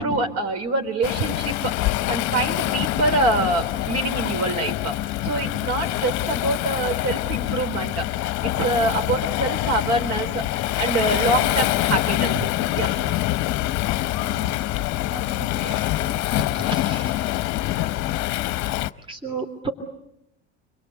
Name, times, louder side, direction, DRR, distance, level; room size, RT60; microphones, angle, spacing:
voice 1, 0.0-4.9 5.2-8.0 8.4-12.5 12.8-13.2 15.6-16.4, right 2 dB, 50° right, 5 dB, 4.6 m, -25 dB
Waves surf, 1.0-18.9, left 16 dB, 55° left, 0.9 m, -25 dB
voice 2, 14.2-14.5 15.1-15.8 16.0-16.2 16.5-17.1 18.6-18.7 19.1-19.7, right 3 dB, 15° right, 7 dB, 3.1 m, -34 dB
28.5 x 22.0 x 8.3 m, 0.81 s
hypercardioid pair, 90°, 34 cm